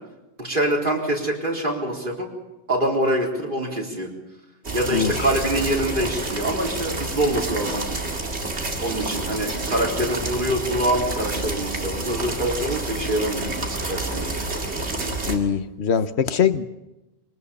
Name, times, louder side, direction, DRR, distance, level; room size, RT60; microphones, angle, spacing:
voice 1, 0.4-2.3 2.7-4.1 4.7-7.9 8.8-13.5 13.8-14.4, right 1 dB, 50° right, -1 dB, 4.2 m, -25 dB
sound 1, 4.6-15.4, right 2 dB, 85° right, 2.5 m, -29 dB
voice 2, 15.3-16.6, left 7 dB, 75° left, 11 dB, 1.2 m, -22 dB
23.0 x 19.0 x 7.0 m, 0.97 s
omnidirectional pair, 1.1 m